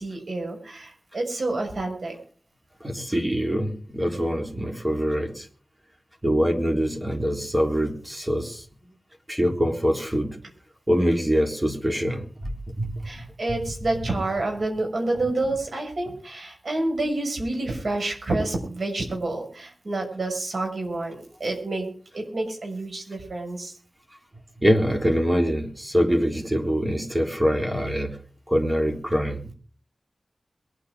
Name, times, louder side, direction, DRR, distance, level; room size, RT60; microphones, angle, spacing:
voice 1, 0.0-2.1 13.0-23.7, right 2 dB, 70° right, 3 dB, 6.3 m, -28 dB
voice 2, 2.8-5.5 6.2-8.6 9.3-10.4 10.9-12.2 12.8-12.9 13.5-13.6 24.6-28.2 28.5-29.4, equal, 15° right, 2 dB, 3.6 m, -24 dB
22.5 x 9.1 x 5.0 m, 0.43 s
wide cardioid pair, 70°, 0 cm